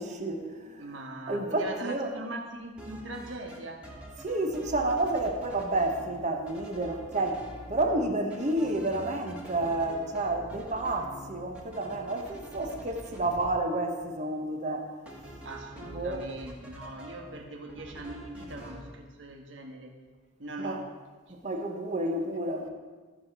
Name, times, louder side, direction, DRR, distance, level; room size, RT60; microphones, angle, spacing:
voice 1, 0.0-0.9 1.3-2.1 4.2-14.9 15.9-16.2 20.6-20.8 21.3-22.7, right 2 dB, 40° right, 1.1 m, -30 dB
voice 2, 0.8-3.9 15.4-20.0 20.4-20.9, right 2 dB, 75° right, 1.3 m, -41 dB
sound 1, 2.6-3.6 3.8-6.1 6.5-8.0 8.3-13.5 15.1-17.4 17.7-18.8, right 1 dB, 5° right, 1.6 m, -45 dB
13.5 x 5.0 x 6.0 m
head